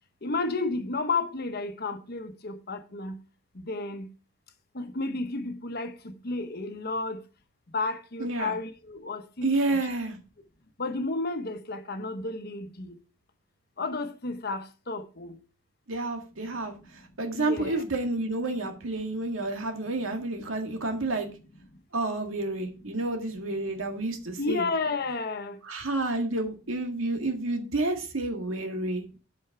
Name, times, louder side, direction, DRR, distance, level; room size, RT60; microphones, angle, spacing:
voice 1, 0.2-3.2 3.5-4.1 4.7-7.2 7.7-9.8 10.8-13.0 13.8-15.4 17.3-17.8 24.4-25.6, left 3 dB, 55° left, 1.1 m, -32 dB
voice 2, 8.2-8.5 9.4-10.2 15.9-16.7 17.2-21.3 21.9-24.6 25.7-29.0, right 2 dB, 85° right, 1.8 m, -30 dB
8.0 x 6.3 x 4.7 m
head